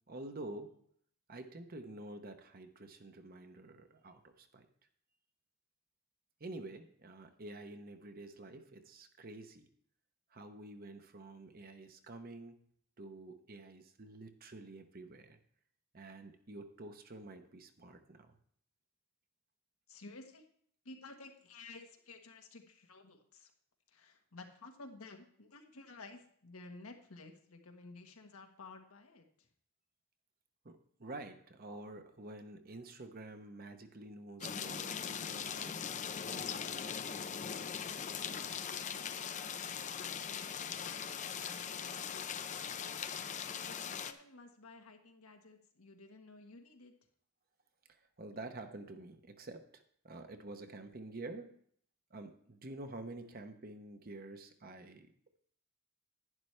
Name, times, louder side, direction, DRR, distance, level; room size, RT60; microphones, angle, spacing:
voice 1, 0.1-0.8 1.3-4.7 6.4-9.7 10.3-12.6 13.0-15.4 15.9-18.4 30.6-35.7 36.3-36.9 47.9-51.5 52.1-55.1, right 2 dB, 40° right, 7 dB, 0.8 m, -49 dB
voice 2, 19.9-20.4 20.8-23.5 23.9-29.5 38.5-41.0 41.3-43.0 43.6-46.9, left 3 dB, 80° left, 4 dB, 1.4 m, -54 dB
sound 1, 34.4-44.1, left 7 dB, 35° left, 0.4 m, -40 dB
11.0 x 10.0 x 3.3 m, 0.62 s
head